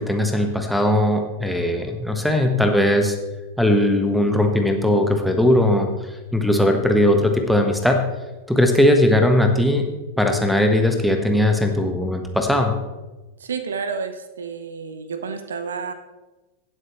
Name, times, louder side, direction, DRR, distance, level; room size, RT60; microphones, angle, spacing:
voice 1, 0.0-3.2 3.6-5.9 6.3-8.0 8.5-9.9 10.2-12.7, left 1 dB, ahead, 3 dB, 1.3 m, -19 dB
voice 2, 13.4-15.9, right 5 dB, 65° right, 10 dB, 0.8 m, -30 dB
17.5 x 7.9 x 3.2 m, 1.1 s
figure-of-eight pair, 90°, 0 cm